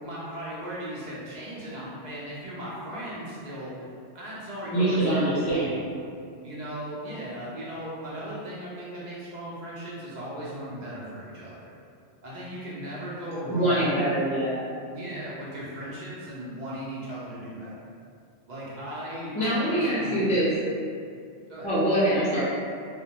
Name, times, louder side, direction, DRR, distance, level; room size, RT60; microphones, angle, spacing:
voice 1, 0.0-3.9 4.1-5.7 6.4-11.7 12.2-14.1 14.9-17.7 18.5-20.3 21.5-21.7, equal, 55° right, -8 dB, 0.5 m, -37 dB
voice 2, 4.7-5.8 13.5-14.6 19.3-20.5 21.6-22.4, right 1 dB, 10° left, -11 dB, 0.4 m, -24 dB
2.2 x 2.1 x 2.8 m, 2.3 s
omnidirectional pair, 1.2 m